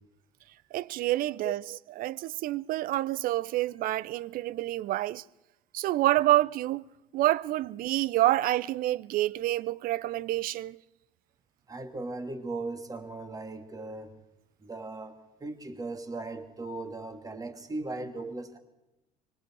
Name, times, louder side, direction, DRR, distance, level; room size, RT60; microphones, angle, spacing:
voice 1, 0.7-5.2 5.7-6.9 7.1-10.8, right 15 dB, 45° right, 0.7 m, -28 dB
voice 2, 11.7-14.1 14.6-18.6, right 2 dB, 20° right, 2.9 m, -38 dB
25.0 x 23.0 x 4.8 m
figure-of-eight pair, 65°, 20 cm